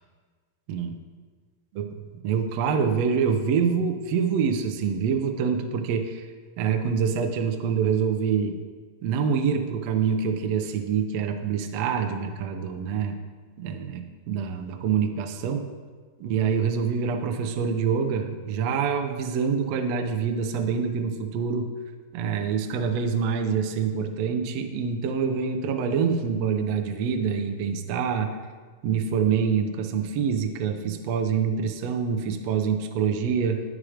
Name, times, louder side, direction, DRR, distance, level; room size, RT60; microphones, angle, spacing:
voice 1, 2.2-6.3 6.6-8.6 9.0-13.2 13.6-15.6 16.2-21.7 22.1-28.4 28.8-33.6, right 6 dB, 80° right, 5 dB, 1.5 m, -26 dB
10.0 x 6.3 x 4.9 m, 1.5 s
omnidirectional pair, 3.8 m